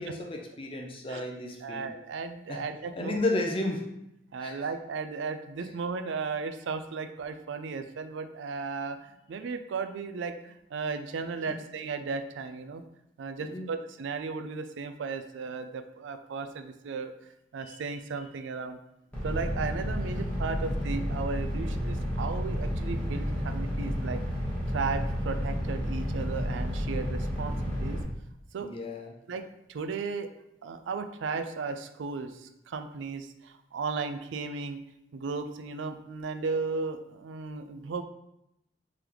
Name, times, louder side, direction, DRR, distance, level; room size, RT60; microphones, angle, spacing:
voice 1, 0.0-1.9 2.5-2.6 2.9-3.9 4.4-4.5 13.4-13.7 17.7-17.8 28.6-29.2, left 2 dB, 30° left, 3 dB, 0.5 m, -33 dB
voice 2, 1.6-3.2 4.3-12.8 13.2-17.1 17.5-18.8 19.2-24.2 24.7-28.0 28.5-28.7 29.3-29.4 29.7-30.3 30.6-34.8 35.1-38.0, right 4 dB, 85° right, 8 dB, 0.4 m, -35 dB
sound 1, 19.1-28.0, equal, 10° left, 1.2 m, -31 dB
3.7 x 3.4 x 2.9 m, 0.83 s
head